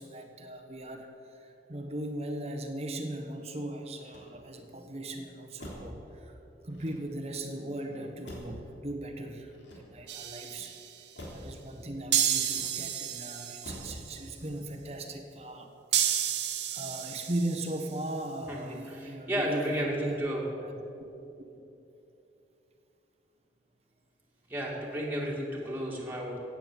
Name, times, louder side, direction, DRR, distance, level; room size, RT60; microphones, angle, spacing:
voice 1, 0.0-6.4 6.6-10.8 11.3-20.7 21.5-21.6, right 1 dB, 35° right, 5 dB, 1.2 m, -38 dB
Motor vehicle (road), 4.0-4.7 5.6-6.0 6.7-7.4 8.2-8.7 9.5-10.2 11.1-11.5 12.4-13.0 13.6-14.0 14.4-14.8, left 1 dB, 85° left, 3.4 m, -46 dB
sound 1, 10.1-11.0 12.1-14.0 15.9-17.8, right 10 dB, 75° right, 1.1 m, -31 dB
voice 2, 18.5-20.4 24.5-26.4, equal, 10° right, -4 dB, 2.4 m, -33 dB
15.5 x 9.0 x 7.5 m, 3.0 s
head